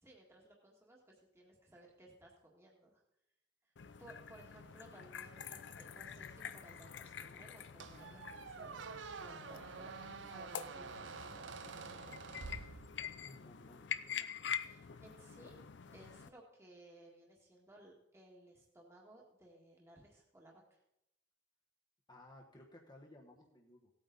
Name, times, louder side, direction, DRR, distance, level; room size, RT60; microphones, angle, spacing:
voice 1, 0.0-3.0 4.0-9.9 10.3-12.2 14.6-15.6 15.9-20.8, right 1 dB, 15° right, -2 dB, 1.8 m, -60 dB
sound 1, 3.8-16.3, left 8 dB, 70° left, 0.5 m, -46 dB
Squeak, 7.8-13.3, right 5 dB, 80° right, 0.6 m, -48 dB
voice 2, 13.2-14.6 22.1-23.9, left 1 dB, 25° left, -1 dB, 1.2 m, -59 dB
17.0 x 9.0 x 4.0 m, 0.85 s
head